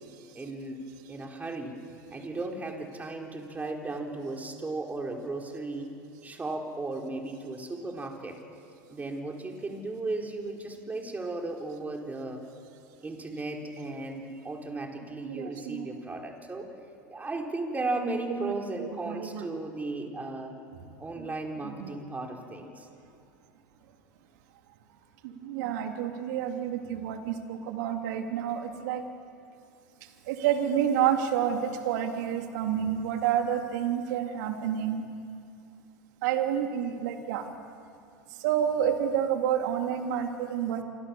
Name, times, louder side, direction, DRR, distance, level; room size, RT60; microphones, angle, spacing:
voice 1, 0.3-1.8 2.1-5.9 6.2-8.4 8.9-12.4 13.0-16.7 17.1-20.6 21.0-22.9, right 2 dB, 15° right, 2 dB, 4.4 m, -35 dB
voice 2, 15.2-15.9 18.0-19.5 21.2-21.3 21.6-21.9 25.2-29.0 30.2-35.0 36.2-37.5 38.3-40.8, right 9 dB, 65° right, 4 dB, 3.4 m, -29 dB
27.5 x 24.0 x 7.2 m, 2.6 s
hypercardioid pair, 95°, 10 cm